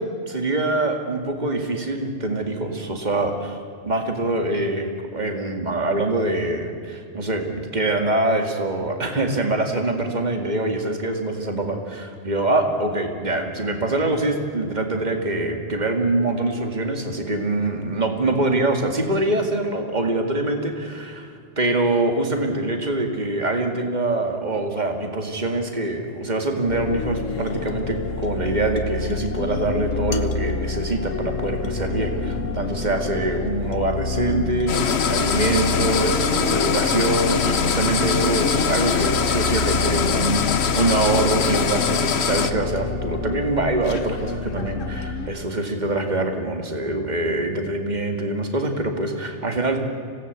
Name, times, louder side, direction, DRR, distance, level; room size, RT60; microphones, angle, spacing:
voice 1, 0.0-3.6 3.8-49.8, right 2 dB, 35° right, 4 dB, 2.4 m, -24 dB
sound 1, 26.7-45.3, left 4 dB, 85° left, 1.4 m, -29 dB
sound 2, 34.7-42.5, left 6 dB, 60° left, 1.2 m, -23 dB
25.5 x 17.5 x 8.2 m, 2.3 s
omnidirectional pair, 1.3 m